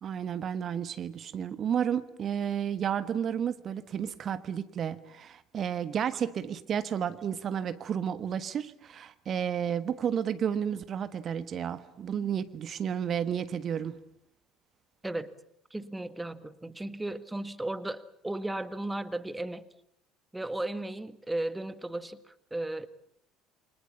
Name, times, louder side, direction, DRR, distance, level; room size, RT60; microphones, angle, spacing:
voice 1, 0.0-14.0, right 8 dB, 40° right, 13 dB, 1.4 m, -32 dB
voice 2, 15.7-19.6 20.3-22.9, right 1 dB, 10° right, 14 dB, 1.6 m, -35 dB
28.5 x 25.5 x 7.1 m, 0.73 s
figure-of-eight pair, 60°, 0 cm